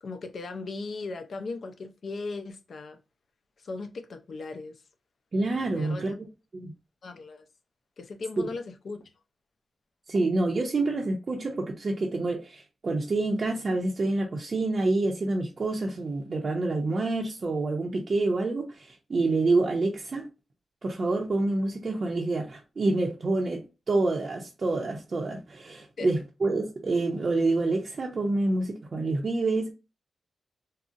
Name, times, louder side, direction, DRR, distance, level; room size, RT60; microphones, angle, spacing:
voice 1, 0.0-3.0 3.6-4.8 5.7-6.1 7.0-7.5 8.0-9.1 26.0-26.1, left 3 dB, 60° left, 0.5 m, -37 dB
voice 2, 5.3-6.1 6.5-6.7 8.4-8.5 10.1-20.3 20.8-23.6 23.9-29.7, right 2 dB, 45° right, 0.6 m, -27 dB
3.8 x 2.0 x 2.4 m
wide cardioid pair, 120°, 0 cm